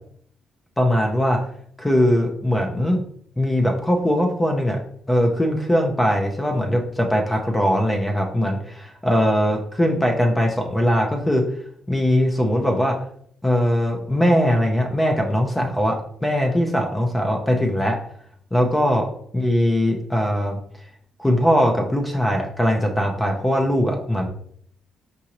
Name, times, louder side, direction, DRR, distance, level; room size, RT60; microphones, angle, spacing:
voice 1, 0.8-1.4 1.8-3.0 3.4-4.8 5.1-11.4 11.9-13.0 13.4-18.0 18.5-19.1 19.3-20.6 21.2-24.3, equal, 10° left, 2 dB, 0.6 m, -20 dB
4.8 x 2.6 x 2.9 m, 0.64 s
cardioid pair, 90°, 0 cm